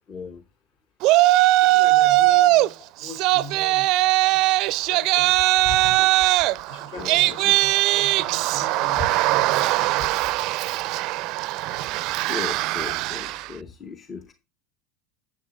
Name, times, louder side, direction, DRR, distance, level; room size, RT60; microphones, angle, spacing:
voice 1, 0.1-0.4 7.0-7.5 12.3-14.3, left 5 dB, 30° left, 0.8 m, -37 dB
Yell, 1.0-2.7 3.0-13.5, right 18 dB, 55° right, 0.4 m, -20 dB
voice 2, 1.6-3.9 4.3-5.3 5.6-6.1 6.7-10.1, left 2 dB, 65° left, 4.9 m, -39 dB
13.0 x 7.6 x 2.3 m
hypercardioid pair, 85°, 0 cm